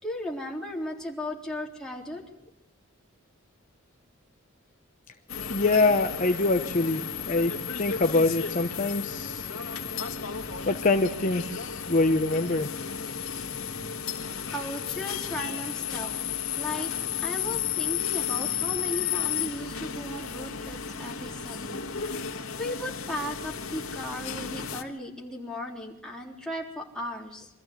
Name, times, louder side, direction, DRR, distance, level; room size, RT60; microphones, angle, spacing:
voice 1, 0.0-2.2 14.5-16.1 16.6-21.8 22.6-27.5, left 1 dB, 5° left, -1 dB, 3.7 m, -36 dB
sound 1, 5.3-24.8, left 8 dB, 85° left, 1.9 m, -33 dB
voice 2, 5.5-7.0 7.3-7.5 7.8-9.5 10.7-12.7, left 3 dB, 40° left, 6 dB, 1.0 m, -24 dB
24.5 x 14.5 x 8.2 m, 0.84 s
head